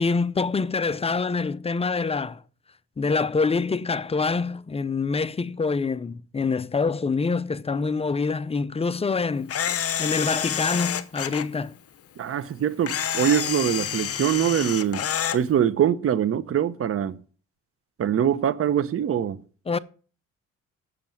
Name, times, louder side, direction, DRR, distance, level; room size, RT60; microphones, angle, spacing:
voice 1, 0.0-2.4 3.0-9.6 10.0-11.8 19.7-19.8, left 4 dB, 20° left, 0.5 m, -25 dB
Camera, 9.5-11.4 12.9-15.4, left 9 dB, 50° left, 0.9 m, -28 dB
voice 2, 12.2-15.0 15.3-17.2 18.0-19.4, right 9 dB, 50° right, 0.8 m, -23 dB
7.7 x 6.7 x 7.2 m
cardioid pair, 90°, 30 cm